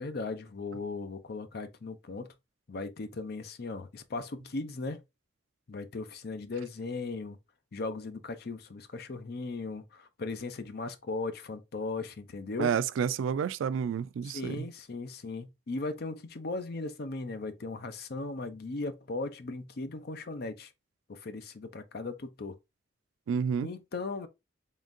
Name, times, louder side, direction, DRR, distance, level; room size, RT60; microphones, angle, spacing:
voice 1, 0.0-2.3 2.7-5.0 5.7-7.4 7.7-12.7 14.2-20.7 21.1-22.6 23.6-24.3, left 3 dB, 55° left, 0.6 m, -37 dB
voice 2, 12.6-14.6 23.3-23.7, right 7 dB, 85° right, 0.3 m, -30 dB
3.7 x 3.6 x 2.5 m
head